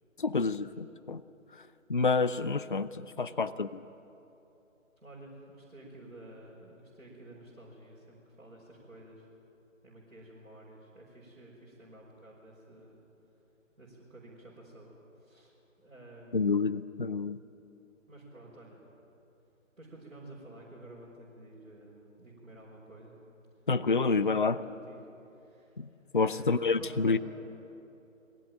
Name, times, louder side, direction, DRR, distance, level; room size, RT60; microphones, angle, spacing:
voice 1, 0.2-1.2 1.9-3.8 16.3-17.4 23.7-24.6 25.8-27.2, left 4 dB, 40° left, 14 dB, 0.5 m, -28 dB
voice 2, 3.1-3.6 5.0-9.3 9.8-13.1 13.8-15.5 15.8-16.8 18.1-18.8 19.8-23.2 23.9-26.4 26.8-27.2, right 1 dB, 75° right, -6 dB, 5.2 m, -52 dB
22.0 x 16.0 x 8.9 m, 2.9 s
figure-of-eight pair, 150°, 40 cm